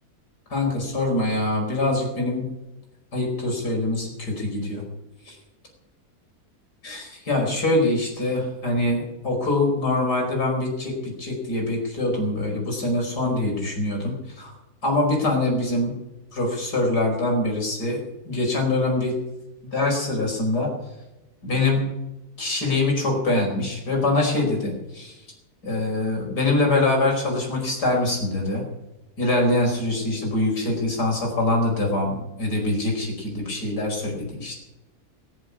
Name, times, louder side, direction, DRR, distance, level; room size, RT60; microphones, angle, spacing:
voice 1, 0.5-2.5 3.1-4.8 5.3-5.4 6.8-14.5 14.8-16.0 16.3-19.2 19.7-20.7 21.4-21.9 22.4-25.2 25.6-28.6 29.2-34.6, left 2 dB, 85° left, 0 dB, 5.6 m, -24 dB
21.5 x 7.9 x 8.3 m, 1.0 s
omnidirectional pair, 1.7 m